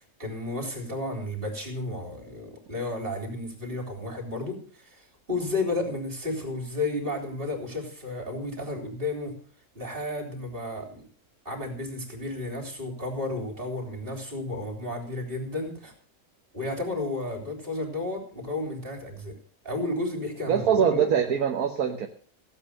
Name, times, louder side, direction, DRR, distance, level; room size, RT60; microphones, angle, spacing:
voice 1, 0.0-9.4 9.7-11.1 11.5-15.9 16.5-19.4 19.6-21.1, left 2 dB, 35° right, 3 dB, 4.0 m, -32 dB
voice 2, 20.5-22.1, right 8 dB, 65° right, 4 dB, 1.6 m, -23 dB
16.0 x 8.4 x 6.6 m, 0.43 s
omnidirectional pair, 1.7 m